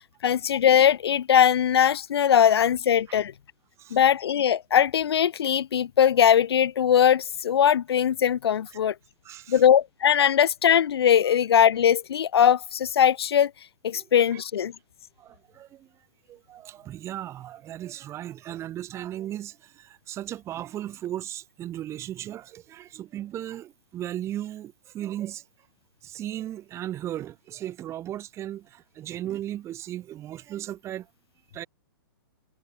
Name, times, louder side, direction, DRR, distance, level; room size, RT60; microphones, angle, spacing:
voice 1, 0.2-3.3 3.9-8.9 9.5-13.5 13.8-14.7, left 9 dB, 90° left, 0.4 m, -20 dB
voice 2, 9.2-9.6 13.9-14.4 15.2-15.9 16.3-25.4 26.0-31.1 31.5-31.7, right 12 dB, 20° right, 2.1 m, -36 dB
hypercardioid pair, 140°, 13 cm